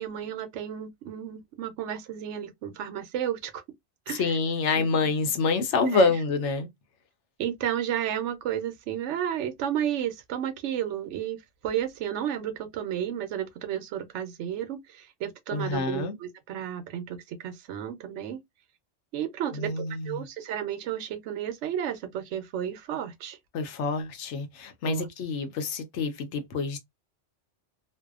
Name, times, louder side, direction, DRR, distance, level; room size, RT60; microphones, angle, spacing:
voice 1, 0.0-3.6 4.1-4.4 4.7-4.9 5.9-6.1 7.4-18.4 19.1-23.4 24.8-25.1, right 10 dB, 80° right, 0.9 m, -32 dB
voice 2, 4.1-6.7 15.5-16.2 19.5-20.3 23.5-26.8, left 4 dB, 80° left, 0.9 m, -27 dB
2.6 x 2.1 x 2.3 m
omnidirectional pair, 1.2 m